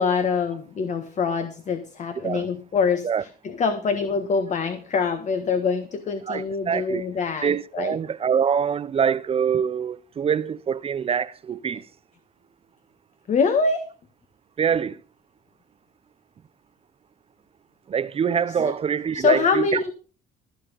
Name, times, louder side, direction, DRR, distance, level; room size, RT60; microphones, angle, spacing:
voice 1, 0.0-8.0 13.3-13.9 18.6-18.7 19.1-19.9, left 5 dB, 45° left, 1.4 m, -24 dB
voice 2, 6.3-7.0 7.4-11.9 14.6-15.0 17.9-19.9, right 7 dB, 35° right, 0.6 m, -24 dB
15.0 x 7.2 x 5.5 m
cardioid pair, 110°, 17 cm